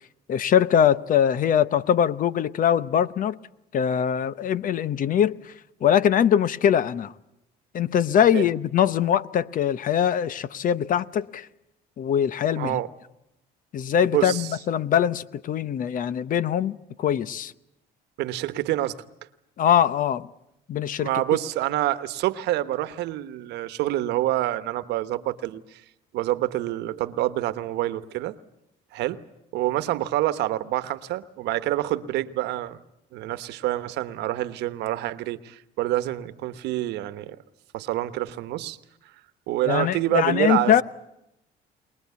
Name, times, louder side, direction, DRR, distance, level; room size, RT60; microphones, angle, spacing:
voice 1, 0.3-3.4 3.7-5.5 5.8-7.1 7.7-11.5 12.0-12.8 13.7-17.5 19.6-20.3 20.7-21.1 39.7-40.8, left 9 dB, 55° left, 0.9 m, -22 dB
voice 2, 12.6-12.9 14.1-14.5 18.2-19.0 21.0-25.8 26.1-28.3 28.9-29.2 29.5-32.8 33.1-37.4 37.7-38.8 39.5-40.8, right 15 dB, 85° right, 1.1 m, -27 dB
23.0 x 20.0 x 8.3 m
cardioid pair, 110°, 17 cm